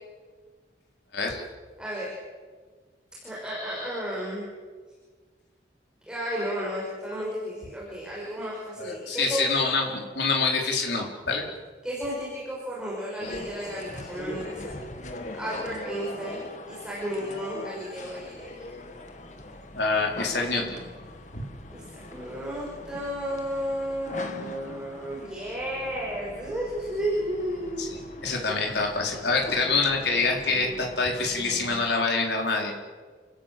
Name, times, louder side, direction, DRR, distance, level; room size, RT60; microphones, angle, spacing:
voice 1, 1.1-1.4 8.8-11.4 13.2-13.3 19.7-20.8 21.3-21.5 27.8-32.7, left 3 dB, 75° left, 0 dB, 4.6 m, -26 dB
voice 2, 1.8-2.1 3.2-4.5 6.1-9.9 11.8-14.7 15.4-16.4 16.7-18.6 21.7-28.0 28.3-28.4, equal, 5° right, -6 dB, 5.7 m, -33 dB
sound 1, 13.2-31.9, left 1 dB, 40° left, 2.1 m, -41 dB
30.0 x 16.5 x 7.8 m, 1.5 s
head